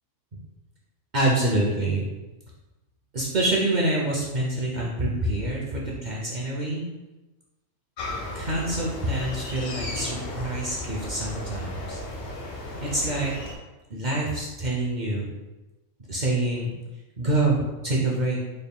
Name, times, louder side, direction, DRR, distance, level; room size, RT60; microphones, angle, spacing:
voice 1, 1.1-2.1 3.1-6.8 8.3-12.0 12.8-13.3 13.9-15.3 16.1-16.7 17.2-18.4, right 2 dB, 55° right, -4 dB, 0.5 m, -26 dB
sound 1, 8.0-13.6, left 1 dB, 70° left, 1.1 m, -35 dB
4.0 x 3.5 x 2.2 m, 1.1 s
omnidirectional pair, 1.5 m